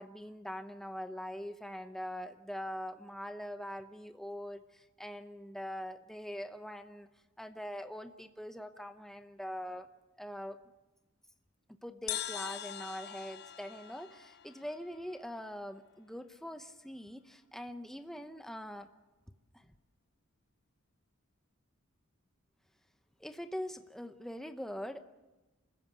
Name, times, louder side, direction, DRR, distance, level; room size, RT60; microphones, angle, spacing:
voice 1, 0.0-7.1 7.4-9.9 10.2-10.6 11.8-18.9 19.5-19.7 23.2-25.0, equal, ahead, 7 dB, 0.8 m, -43 dB
sound 1, 12.1-15.6, left 10 dB, 50° left, 0.7 m, -43 dB
27.5 x 15.0 x 8.3 m, 1.1 s
head